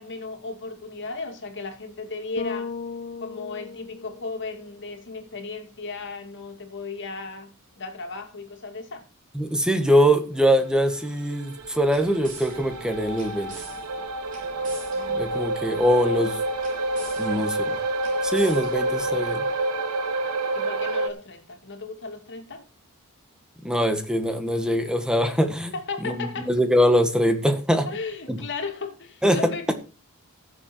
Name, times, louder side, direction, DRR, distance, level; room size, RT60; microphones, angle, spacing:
voice 1, 0.0-2.7 3.2-9.1 14.4-15.3 20.5-22.7 25.7-26.5 27.8-29.7, left 3 dB, 55° left, 2.7 m, -36 dB
Bass guitar, 2.4-4.7, left 4 dB, 35° left, 1.3 m, -36 dB
voice 2, 9.3-13.5 15.2-16.4 17.2-17.8 18.2-19.4 23.6-25.7 26.0-27.9 28.3-28.4 29.2-29.5, equal, 5° right, 1.7 m, -22 dB
sound 1, 10.7-21.1, right 2 dB, 85° right, 1.2 m, -28 dB
sound 2, 11.5-19.6, right 3 dB, 40° right, 4.4 m, -46 dB
15.5 x 7.5 x 4.5 m
head